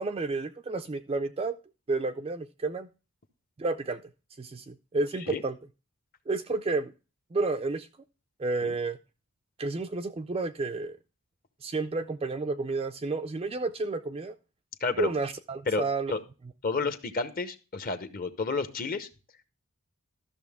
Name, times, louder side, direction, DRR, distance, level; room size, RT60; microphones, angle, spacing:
voice 1, 0.0-1.6 1.9-2.9 3.6-4.0 4.4-5.6 6.3-6.9 7.3-7.9 8.4-9.0 9.6-11.0 11.6-14.4 15.0-16.1, right 3 dB, 25° right, 7 dB, 0.3 m, -31 dB
voice 2, 14.8-15.1 15.7-15.8 16.1-16.2 16.6-19.1, left 4 dB, 40° left, 10 dB, 0.8 m, -30 dB
13.0 x 6.5 x 3.5 m, 0.32 s
head